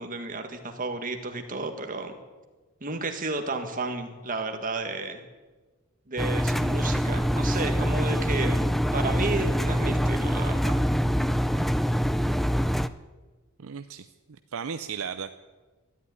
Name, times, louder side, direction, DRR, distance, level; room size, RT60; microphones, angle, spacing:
voice 1, 0.0-2.2 2.8-5.2 6.1-10.8, right 3 dB, 40° right, 5 dB, 1.7 m, -32 dB
Engine, 6.2-12.9, equal, ahead, 0.4 m, -25 dB
voice 2, 13.6-15.3, right 6 dB, 65° right, 9 dB, 0.6 m, -36 dB
13.0 x 11.0 x 9.5 m, 1.3 s
head